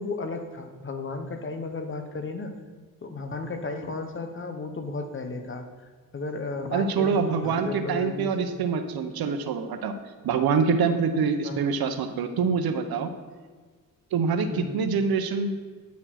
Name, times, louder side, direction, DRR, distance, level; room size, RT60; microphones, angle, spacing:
voice 1, 0.0-2.5 3.0-5.7 6.1-8.5 11.4-11.7 14.5-14.9, left 3 dB, 35° left, 6 dB, 0.9 m, -34 dB
voice 2, 6.7-9.9 10.2-13.1 14.1-15.5, right 5 dB, 85° right, 8 dB, 0.9 m, -25 dB
9.5 x 4.4 x 5.8 m, 1.5 s
cardioid pair, 110°, 35 cm